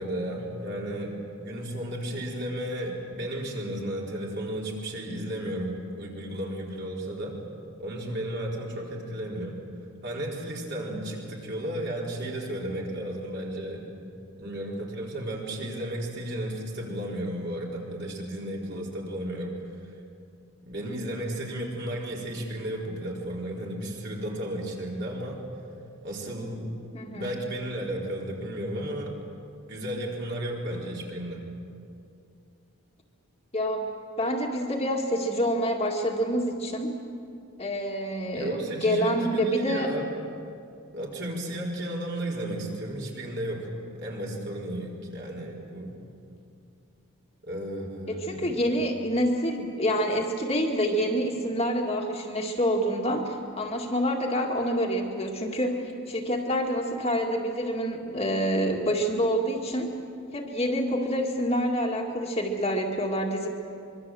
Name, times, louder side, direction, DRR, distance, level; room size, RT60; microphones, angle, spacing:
voice 1, 0.0-7.4 7.8-9.6 10.0-13.9 14.4-19.5 20.6-25.4 26.0-26.7 27.1-29.2 29.7-31.4 38.3-40.1 40.9-43.7 44.0-46.0 47.5-48.5, right 1 dB, 50° right, -3 dB, 4.7 m, -33 dB
voice 2, 26.9-27.3 33.5-33.9 34.2-37.0 37.6-39.9 48.1-59.9 60.3-63.5, equal, 25° left, 0 dB, 2.1 m, -27 dB
25.0 x 23.5 x 7.8 m, 2.5 s
head